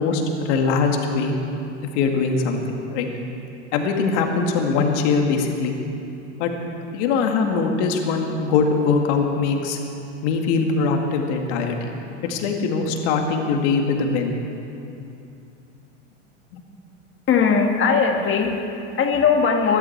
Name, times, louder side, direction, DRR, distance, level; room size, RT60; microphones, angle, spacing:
voice 1, 0.0-1.4 1.9-3.1 3.7-5.7 6.4-6.5 6.9-9.8 10.2-11.9 12.2-14.4 16.5-16.6, left 4 dB, 60° left, 3 dB, 2.2 m, -22 dB
voice 2, 17.3-19.8, left 5 dB, 30° left, 3 dB, 1.9 m, -19 dB
22.0 x 12.0 x 4.6 m, 2.8 s
hypercardioid pair, 100°, 38 cm